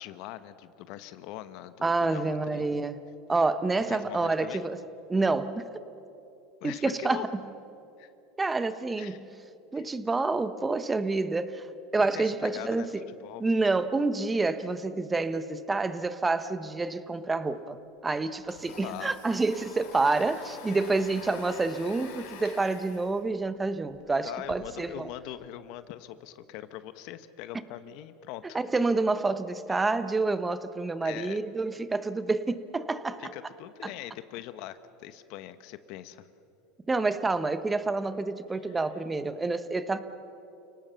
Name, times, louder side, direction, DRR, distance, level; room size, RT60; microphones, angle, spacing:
voice 1, 0.0-2.6 3.9-4.6 6.6-7.3 8.0-8.1 9.0-9.2 9.7-9.8 12.0-13.4 18.8-19.1 24.2-28.6 29.7-29.8 31.0-31.4 33.2-36.3, left 13 dB, 65° left, 13 dB, 1.1 m, -42 dB
voice 2, 1.8-3.0 3.3-4.8 5.1-5.7 6.6-7.4 8.4-9.3 9.7-11.7 11.9-13.0 13.4-17.8 18.0-25.1 28.4-33.3 33.8-33.9 36.9-40.0, right 3 dB, 15° right, 12 dB, 1.1 m, -28 dB
Domestic sounds home sounds, 17.5-17.6 17.9-24.6, left 6 dB, 80° left, 4.1 m, -47 dB
30.0 x 18.5 x 7.0 m, 2.8 s
supercardioid pair, 115°, 0 cm